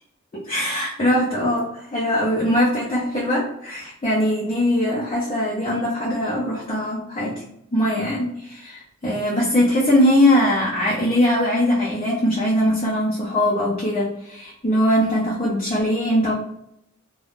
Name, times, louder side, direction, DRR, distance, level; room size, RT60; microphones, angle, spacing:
voice 1, 0.3-7.4 7.7-16.3, left 1 dB, 30° left, -5 dB, 0.5 m, -21 dB
2.4 x 2.2 x 3.3 m, 0.76 s
head